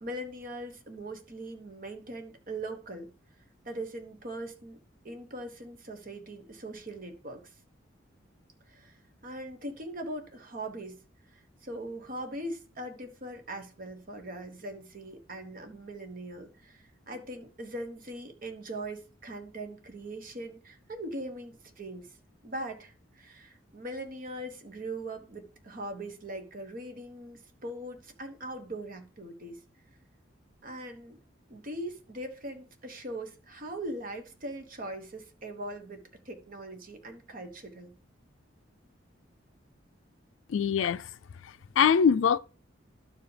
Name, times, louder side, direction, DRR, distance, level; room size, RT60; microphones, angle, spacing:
voice 1, 0.0-3.1 3.6-7.4 8.7-9.0 9.2-11.0 11.3-22.1 22.4-29.6 30.6-31.2 31.5-37.9, right 1 dB, 45° right, 1.1 m, -41 dB
voice 2, 40.5-41.1 41.4-42.4, left 7 dB, 80° left, 0.4 m, -24 dB
12.0 x 4.7 x 3.3 m
head